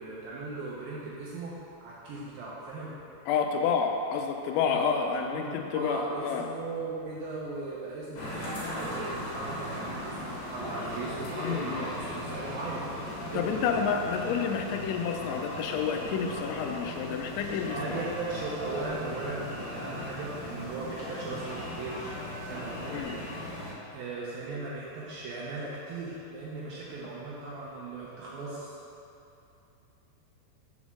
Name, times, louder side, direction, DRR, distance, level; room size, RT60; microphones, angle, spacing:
voice 1, 0.0-1.5 1.8-2.9 4.7-13.0 13.3-13.5 17.8-22.1 22.4-23.0 23.9-28.8, right 3 dB, 80° right, -6 dB, 2.1 m, -37 dB
voice 2, 3.3-6.5 11.4-11.9 13.3-18.0 22.9-23.2, left 6 dB, 85° left, 4 dB, 2.9 m, -29 dB
sound 1, 8.2-23.7, left 1 dB, 70° left, 3.5 m, -38 dB
7.8 x 4.2 x 6.0 m, 2.7 s
omnidirectional pair, 5.3 m